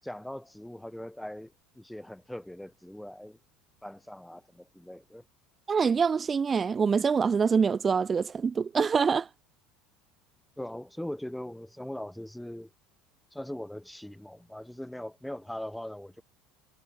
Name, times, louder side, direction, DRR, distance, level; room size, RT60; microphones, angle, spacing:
voice 1, 0.0-3.4 3.8-5.2 10.6-12.7 13.3-16.2, left 1 dB, 5° left, 6.5 m, -40 dB
voice 2, 5.7-9.3, right 6 dB, 30° right, 5.3 m, -25 dB
supercardioid pair, 95°, 0 cm